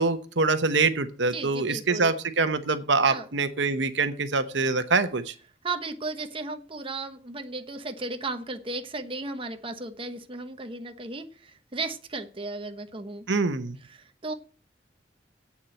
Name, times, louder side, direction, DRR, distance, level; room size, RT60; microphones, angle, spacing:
voice 1, 0.0-5.3 13.3-13.8, right 4 dB, 75° right, 9 dB, 1.0 m, -25 dB
voice 2, 1.3-2.1 3.1-3.3 5.6-13.3 13.8-14.3, right 3 dB, 30° right, 6 dB, 1.1 m, -35 dB
8.5 x 7.3 x 7.8 m, 0.38 s
head